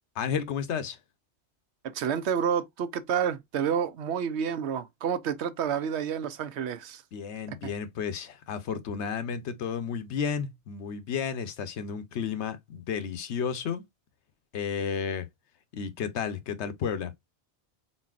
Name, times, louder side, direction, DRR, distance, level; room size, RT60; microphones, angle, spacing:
voice 1, 0.2-1.0 7.1-13.8 14.5-15.3 15.7-17.1, left 7 dB, 80° left, 1.0 m, -32 dB
voice 2, 1.9-7.0 7.5-7.6, right 8 dB, 75° right, 0.9 m, -29 dB
4.2 x 4.1 x 2.4 m
omnidirectional pair, 1.1 m